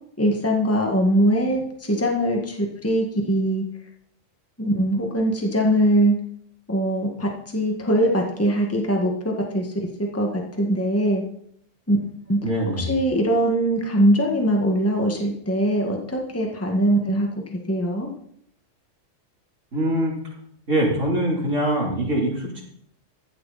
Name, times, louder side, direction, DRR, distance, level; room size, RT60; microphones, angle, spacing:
voice 1, 0.2-3.6 4.6-6.2 6.7-9.7 10.0-11.2 11.9-12.0 12.3-12.4 12.8-18.1, right 1 dB, 10° left, 1 dB, 1.8 m, -22 dB
voice 2, 12.4-12.9 19.7-20.1 20.7-22.6, right 1 dB, 70° right, -3 dB, 4.2 m, -23 dB
15.0 x 11.5 x 4.2 m, 0.67 s
omnidirectional pair, 1.3 m